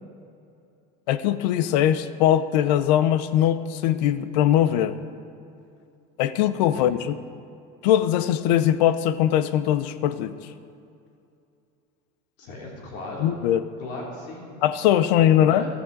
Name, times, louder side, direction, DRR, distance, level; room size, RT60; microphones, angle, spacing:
voice 1, 1.1-5.0 6.2-7.2 7.8-10.3 13.2-13.6 14.6-15.7, left 11 dB, 90° left, 14 dB, 0.7 m, -21 dB
voice 2, 12.4-13.4 13.8-14.5 15.3-15.7, left 2 dB, 55° left, -2 dB, 3.1 m, -37 dB
14.0 x 13.5 x 4.0 m, 2.5 s
cardioid pair, 170°, 21 cm